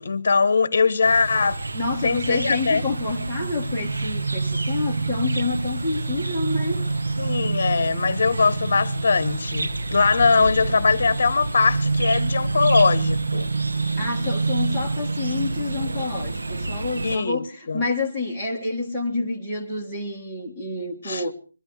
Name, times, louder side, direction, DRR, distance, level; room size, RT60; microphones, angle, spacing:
voice 1, 0.0-1.6 2.0-2.9 7.2-13.5 17.0-17.8 21.0-21.2, left 4 dB, 45° left, 1.1 m, -21 dB
sound 1, 1.0-17.2, right 3 dB, 80° right, 1.0 m, -27 dB
voice 2, 1.7-6.9 14.0-21.3, left 3 dB, 5° right, 1.6 m, -28 dB
22.0 x 12.5 x 4.8 m
hypercardioid pair, 175°, 0 cm